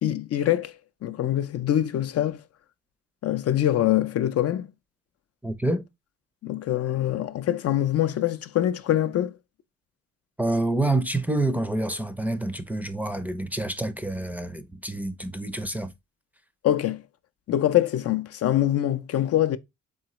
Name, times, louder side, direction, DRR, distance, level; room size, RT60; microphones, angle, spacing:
voice 1, 0.0-0.8 1.0-2.4 3.2-4.7 6.4-9.4 16.6-17.0 17.5-19.6, left 12 dB, 55° left, 0.5 m, -24 dB
voice 2, 5.4-5.8 10.4-15.9, right 2 dB, 5° right, 0.5 m, -27 dB
3.9 x 3.6 x 3.0 m
cardioid pair, 90°, 30 cm